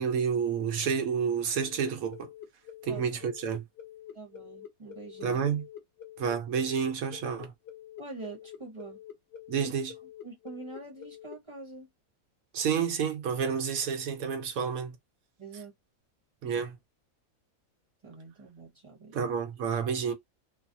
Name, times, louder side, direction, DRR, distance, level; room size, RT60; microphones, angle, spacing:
voice 1, 0.0-2.3 2.8-3.6 5.2-5.6 6.2-7.5 9.5-9.9 12.5-14.9 16.4-16.8 19.1-20.1, right 7 dB, 75° right, 1.2 m, -29 dB
sound 1, 1.5-11.4, left 10 dB, 50° left, 1.0 m, -46 dB
voice 2, 4.1-5.4 8.0-9.0 10.2-11.9 15.4-15.7 18.0-19.3, right 3 dB, 25° right, 0.8 m, -45 dB
3.1 x 2.0 x 2.6 m
omnidirectional pair, 1.5 m